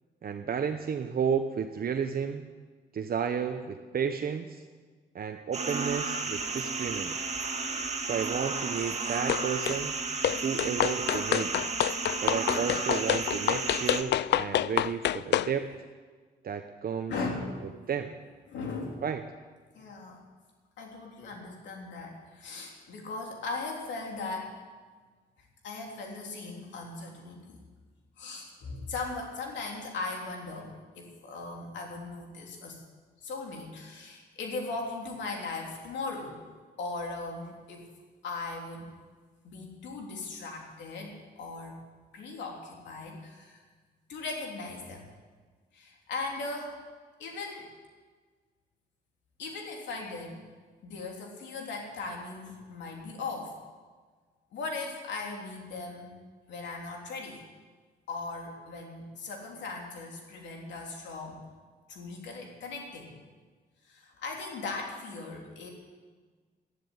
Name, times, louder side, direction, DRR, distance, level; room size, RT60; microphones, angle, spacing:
voice 1, 0.2-2.4 2.9-4.6 5.1-7.1 8.1-10.0 10.4-11.6 12.2-15.7 16.4-17.1 17.9-18.1 19.0-19.2, right 7 dB, 55° right, 6 dB, 1.0 m, -32 dB
sound 1, 5.5-14.0, right 3 dB, 40° right, 1.9 m, -33 dB
sound 2, 9.3-9.8 10.2-15.5, left 12 dB, 75° left, 0.4 m, -28 dB
voice 2, 17.1-17.6 18.5-19.0 19.7-20.2 20.8-24.5 25.6-27.6 28.2-32.8 33.2-36.4 36.8-37.9 38.2-38.9 39.4-41.8 42.1-43.6 44.1-45.1 45.7-46.8 47.2-47.7 49.4-50.5 50.8-53.5 54.5-56.2 56.5-57.4 58.1-61.4 61.9-63.2 63.8-65.7, left 3 dB, 90° left, 1 dB, 3.3 m, -38 dB
12.5 x 11.5 x 9.4 m, 1.5 s
cardioid pair, 75°, 18 cm